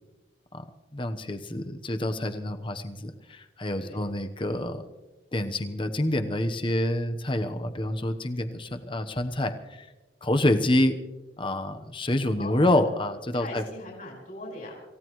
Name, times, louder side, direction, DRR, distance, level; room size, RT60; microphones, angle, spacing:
voice 1, 0.9-4.8 5.3-9.9 10.2-11.0 11.4-13.6, left 1 dB, 30° left, 8 dB, 1.1 m, -27 dB
voice 2, 12.4-12.8 13.3-14.8, left 1 dB, 50° left, -2 dB, 5.0 m, -39 dB
27.0 x 16.0 x 3.2 m, 1.1 s
head